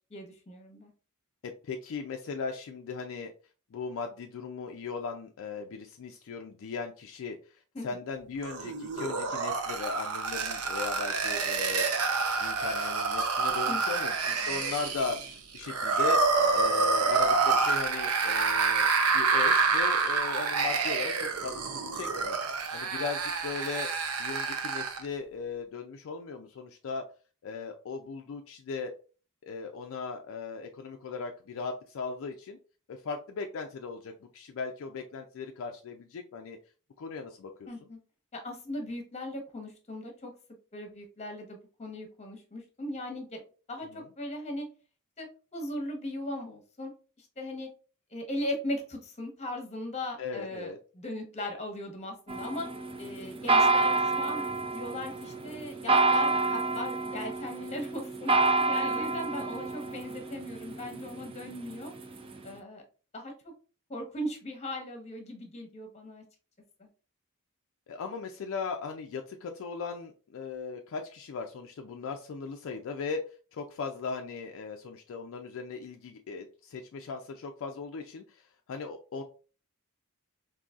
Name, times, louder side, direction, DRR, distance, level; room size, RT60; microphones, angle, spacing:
voice 1, 0.1-0.9 7.7-7.9 13.6-14.0 37.7-38.0 38.3-40.3 40.7-43.4 43.7-44.7 45.2-45.3 45.5-46.9 47.2-47.7 48.1-52.7 53.0-61.9 62.4-62.8 63.1-63.5 63.9-66.2 66.8-66.9, left 1 dB, 30° left, 4 dB, 0.9 m, -38 dB
voice 2, 1.4-3.3 3.7-7.4 7.8-11.9 12.4-16.2 16.5-22.4 22.7-23.9 24.2-27.0 27.4-28.9 29.4-32.6 32.9-36.6 37.0-37.7 43.9-44.1 50.2-50.8 58.9-59.2 67.9-73.2 73.5-79.2, left 4 dB, 60° left, 4 dB, 0.4 m, -38 dB
sound 1, 8.4-25.1, right 4 dB, 70° right, 0.6 m, -28 dB
sound 2, 52.3-62.5, right 3 dB, 25° right, 0.4 m, -29 dB
3.8 x 2.7 x 2.3 m, 0.36 s
head